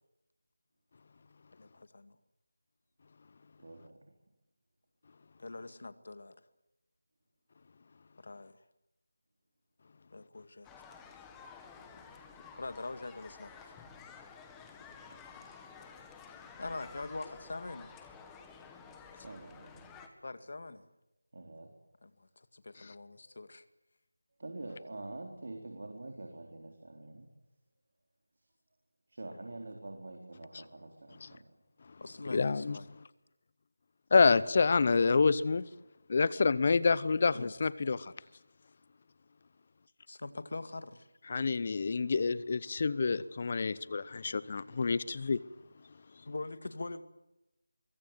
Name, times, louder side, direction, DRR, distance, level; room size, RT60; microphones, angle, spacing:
voice 1, 1.6-2.2 5.4-6.4 8.2-8.6 10.1-10.7 12.6-13.7 16.6-17.9 20.2-20.8 22.0-23.6 30.1-30.2 32.0-32.9 37.3-37.5 40.1-41.1 46.3-47.0, left 2 dB, 60° left, 2.2 m, -43 dB
voice 2, 3.6-4.1 19.1-19.9 21.3-21.7 24.4-27.3 29.1-31.5, right 2 dB, 60° right, 4.1 m, -46 dB
sound 1, 10.6-20.1, left 5 dB, 10° left, 1.8 m, -52 dB
voice 3, 32.3-32.8 34.1-35.7 36.1-38.1 41.3-45.4, left 4 dB, 40° left, 0.8 m, -27 dB
24.0 x 23.5 x 7.9 m
figure-of-eight pair, 165°, 0 cm